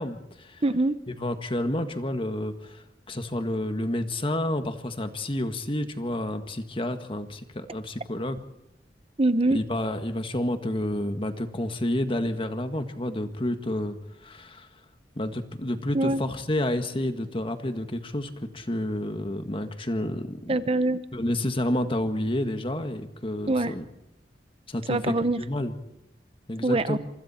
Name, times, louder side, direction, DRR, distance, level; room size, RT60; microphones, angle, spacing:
voice 1, 0.0-0.6 1.1-8.4 9.5-14.7 15.1-20.6 21.1-23.8 24.7-25.7 26.5-27.0, left 1 dB, 30° left, 7 dB, 1.8 m, -30 dB
voice 2, 0.6-1.0 9.2-9.6 15.9-16.2 20.5-21.0 23.5-23.7 24.9-25.4 26.6-27.0, right 2 dB, 35° right, 12 dB, 0.9 m, -23 dB
27.0 x 25.0 x 4.4 m, 0.88 s
head